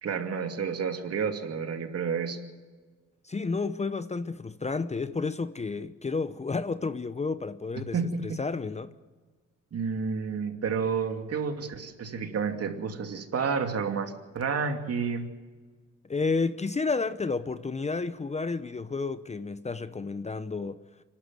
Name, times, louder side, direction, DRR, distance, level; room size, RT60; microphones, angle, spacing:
voice 1, 0.0-2.4 7.9-8.4 9.7-15.3, right 5 dB, 50° right, 2.7 m, -30 dB
voice 2, 3.2-8.0 8.2-8.9 16.0-20.8, left 4 dB, 20° left, 0.8 m, -31 dB
25.5 x 11.5 x 9.3 m
cardioid pair, 90°, 30 cm